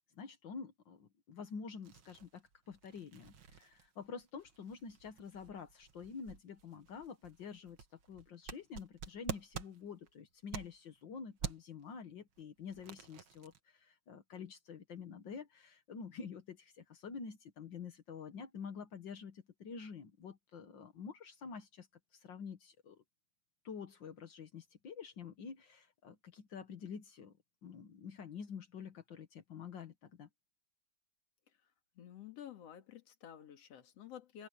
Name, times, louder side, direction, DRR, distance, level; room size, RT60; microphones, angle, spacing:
voice 1, 0.1-7.8 8.1-21.9 22.1-23.0 23.6-27.3 27.6-30.3, left 6 dB, 85° left, 1.0 m, -48 dB
sound 1, 1.8-11.0 11.4-11.8 12.4-13.6, right 7 dB, 55° right, 1.5 m, -48 dB
voice 2, 31.9-34.5, left 10 dB, 45° left, 2.8 m, -51 dB
open air
omnidirectional pair, 4.4 m